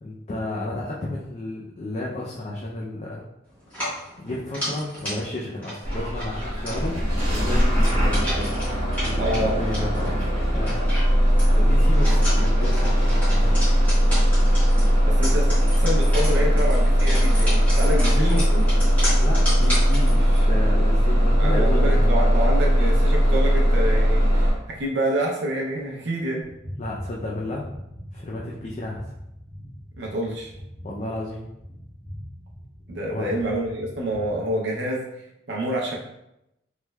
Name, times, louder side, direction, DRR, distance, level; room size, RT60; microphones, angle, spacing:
voice 1, 0.0-3.2 3.8-7.0 7.3-8.6 9.0-10.9 11.3-13.7 17.9-18.5 19.2-22.1 26.8-27.7 28.1-29.0 30.8-31.4 33.1-33.4, left 1 dB, 35° left, -4 dB, 0.4 m, -32 dB
sound 1, 3.7-20.4, equal, 10° left, 1.5 m, -34 dB
Bus / Engine starting, 5.8-24.5, equal, 40° right, 1.2 m, -19 dB
voice 2, 9.2-9.5 15.1-18.7 21.4-26.5 30.0-30.5 32.9-36.0, right 1 dB, 60° right, -1 dB, 0.6 m, -27 dB
sound 2, 26.4-34.5, equal, 90° left, 1.3 m, -41 dB
3.2 x 3.1 x 2.2 m, 0.85 s
head